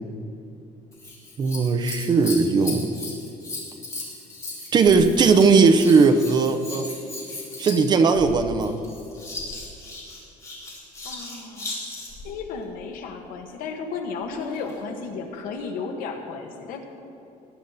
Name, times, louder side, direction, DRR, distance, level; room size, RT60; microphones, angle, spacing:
Scissors, 0.9-12.3 14.2-14.8 15.5-15.6, left 2 dB, 20° left, 2.7 m, -37 dB
voice 1, 1.4-2.9 4.7-6.9 7.6-8.8, right 4 dB, 30° right, 8 dB, 0.8 m, -18 dB
voice 2, 11.0-11.7 12.2-16.8, left 5 dB, 85° left, 3 dB, 1.6 m, -34 dB
19.0 x 11.5 x 4.2 m, 2.9 s
cardioid pair, 175°, 14 cm